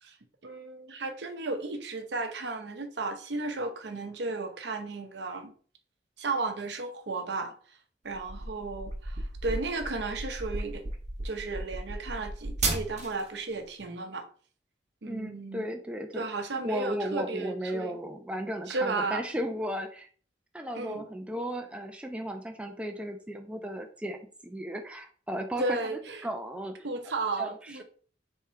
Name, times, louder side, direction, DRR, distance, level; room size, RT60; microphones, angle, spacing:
voice 1, 0.4-5.5 6.2-7.8 8.0-10.8 11.2-14.3 15.0-15.7 16.1-18.0 18.7-19.2 20.8-21.0 25.6-26.3 26.8-27.8, right 3 dB, 70° right, 0.7 m, -34 dB
sound 1, 8.1-13.3, right 2 dB, 40° right, 0.9 m, -34 dB
voice 2, 15.0-16.3 16.6-20.1 20.5-25.8 26.2-26.8 27.4-27.8, equal, 5° right, 0.4 m, -35 dB
3.5 x 2.8 x 4.3 m
head